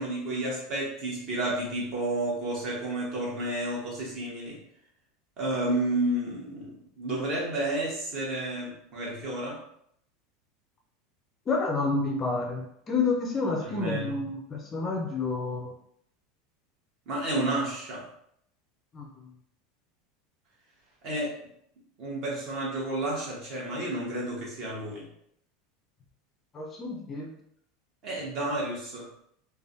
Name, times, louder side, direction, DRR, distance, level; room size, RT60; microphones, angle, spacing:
voice 1, 0.0-4.6 5.4-9.6 13.6-14.1 17.1-18.0 21.0-21.3 22.0-25.0 28.0-29.0, right 1 dB, 40° right, -4 dB, 1.1 m, -31 dB
voice 2, 11.5-15.7 18.9-19.3 26.5-27.3, left 3 dB, 20° left, 0 dB, 0.4 m, -29 dB
3.3 x 2.2 x 2.6 m, 0.72 s
supercardioid pair, 160°, 0 cm